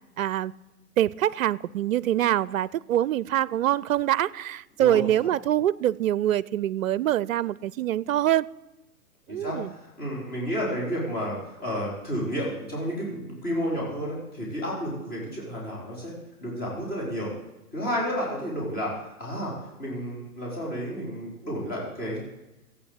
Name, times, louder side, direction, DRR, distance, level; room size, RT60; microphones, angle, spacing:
voice 1, 0.2-0.5 1.0-8.5 9.3-9.7, right 12 dB, 60° right, 0.6 m, -24 dB
voice 2, 9.3-17.3 17.7-22.2, equal, 20° left, 4.3 m, -31 dB
15.0 x 8.8 x 8.0 m
hypercardioid pair, 130°, 45 cm